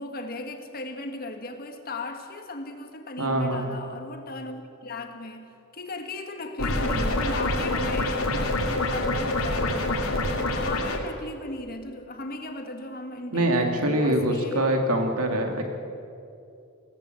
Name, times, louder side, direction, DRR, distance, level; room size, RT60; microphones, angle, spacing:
voice 1, 0.0-15.1, left 2 dB, 45° left, 5 dB, 1.8 m, -37 dB
voice 2, 3.2-3.7 13.3-15.7, right 1 dB, 85° right, 4 dB, 2.2 m, -24 dB
sound 1, 6.6-11.0, left 2 dB, 80° left, 2.7 m, -26 dB
21.0 x 17.0 x 7.8 m, 2.6 s
head